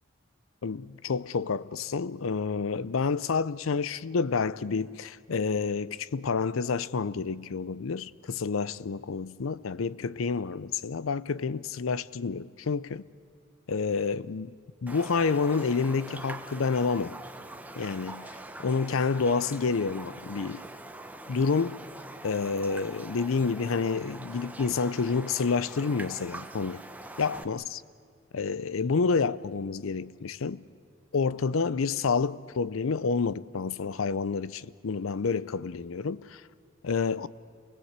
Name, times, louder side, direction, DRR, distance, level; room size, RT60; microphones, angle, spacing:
voice 1, 0.6-13.0 13.7-14.5 14.8-17.2 17.8-18.3 18.6-20.6 21.3-21.8 22.2-26.8 27.2-27.8 28.3-30.6 31.1-36.4 36.8-37.3, left 5 dB, 85° left, 0.5 m, -29 dB
Raindrop, 14.9-27.4, right 2 dB, 10° right, 0.8 m, -43 dB
28.0 x 19.5 x 8.1 m
head